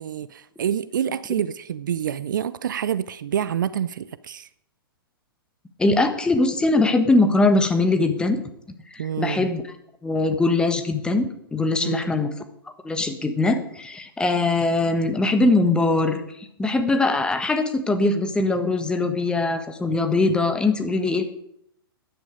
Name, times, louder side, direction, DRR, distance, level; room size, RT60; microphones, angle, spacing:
voice 1, 0.0-4.5 9.0-9.5 11.8-12.1, right 9 dB, 55° right, 17 dB, 0.5 m, -27 dB
voice 2, 5.8-8.4 8.9-9.6 10.0-12.3 12.8-16.2 16.6-21.3, left 2 dB, 5° left, 7 dB, 1.4 m, -21 dB
14.5 x 10.5 x 5.0 m, 0.74 s
figure-of-eight pair, 110°, 12 cm